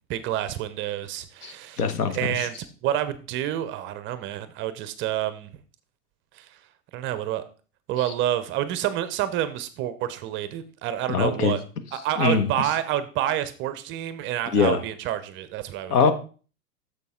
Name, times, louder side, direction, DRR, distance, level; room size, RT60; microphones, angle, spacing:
voice 1, 0.1-5.5 6.3-6.5 6.9-7.4 7.9-11.6 11.9-16.1, right 12 dB, 25° right, 13 dB, 0.5 m, -28 dB
voice 2, 1.4-2.5 11.1-11.6 12.2-12.5 14.5-14.8 15.9-16.1, left 5 dB, 75° left, 10 dB, 1.2 m, -22 dB
6.7 x 6.6 x 3.6 m, 0.37 s
hypercardioid pair, 105°, 46 cm